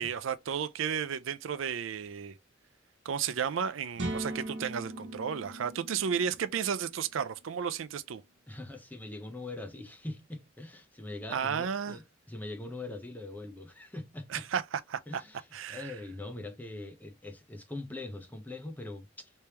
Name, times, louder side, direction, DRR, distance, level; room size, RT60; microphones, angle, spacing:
voice 1, 0.0-2.4 3.0-8.2 11.3-12.0 14.3-15.2 15.5-16.0, right 7 dB, 85° right, 0.4 m, -33 dB
sound 1, 4.0-7.7, right 1 dB, 65° right, 1.2 m, -40 dB
voice 2, 8.5-14.4 15.1-19.3, left 2 dB, 10° left, 0.7 m, -42 dB
3.3 x 3.3 x 2.8 m
head